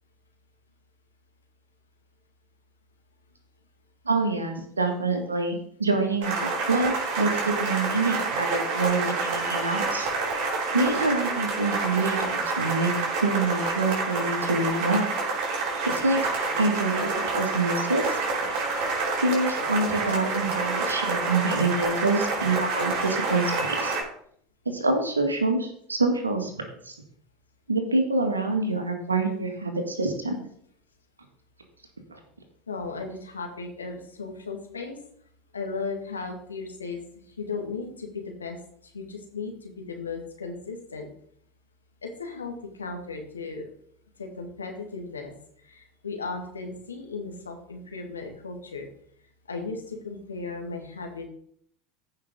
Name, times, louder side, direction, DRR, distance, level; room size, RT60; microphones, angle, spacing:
voice 1, 4.1-10.1 10.7-12.9 13.2-15.1 15.9-16.2 16.6-18.2 19.2-24.0 24.7-26.9 27.7-30.5 32.1-32.2, right 3 dB, 85° right, 5 dB, 1.8 m, -26 dB
sound 1, 6.2-24.0, right 3 dB, 55° right, 4.2 m, -28 dB
voice 2, 32.7-35.0 35.5-37.0 37.4-38.6 38.9-41.1 42.0-43.7 44.2-45.3 45.6-48.9 49.5-51.2, left 4 dB, 85° left, 3 dB, 1.8 m, -36 dB
15.0 x 5.7 x 3.8 m, 0.65 s
figure-of-eight pair, 75°, 0 cm